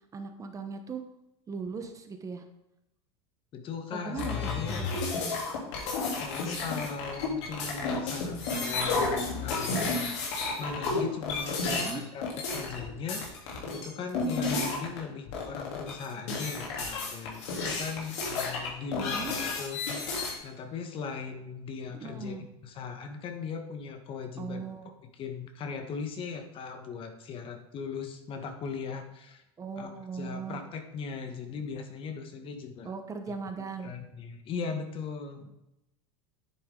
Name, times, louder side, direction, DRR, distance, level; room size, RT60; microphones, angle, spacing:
voice 1, 0.1-1.0 1.5-2.4 3.9-5.1 10.9-11.1 11.7-12.0 19.0-19.3 21.9-22.5 24.4-24.9 29.6-30.6 32.8-33.9, right 5 dB, 20° right, 6 dB, 1.0 m, -38 dB
voice 2, 3.5-4.8 6.1-10.1 10.6-22.4 22.6-24.6 25.0-29.4 29.8-32.9 33.3-33.4 33.8-35.5, left 5 dB, 35° left, 7 dB, 1.4 m, -39 dB
sound 1, 4.2-15.0 15.3-20.3, left 3 dB, 80° left, 3.3 m, -32 dB
9.8 x 7.8 x 3.9 m, 0.88 s
supercardioid pair, 130°, 15 cm